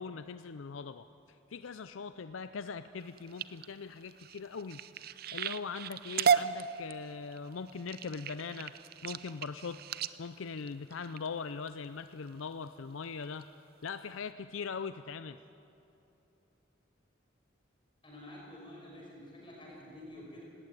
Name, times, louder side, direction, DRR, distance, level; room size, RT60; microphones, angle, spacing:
voice 1, 0.0-4.8 5.3-9.8 10.2-13.5 13.8-15.4, left 5 dB, 85° left, 12 dB, 0.5 m, -41 dB
sound 1, 3.0-11.7 12.3-12.6 13.0-13.4 13.9-14.0 14.3-14.4, right 7 dB, 50° right, 0.6 m, -35 dB
voice 2, 18.0-20.4, left 1 dB, 25° left, -3 dB, 5.3 m, -49 dB
19.0 x 18.0 x 9.2 m, 3.0 s
head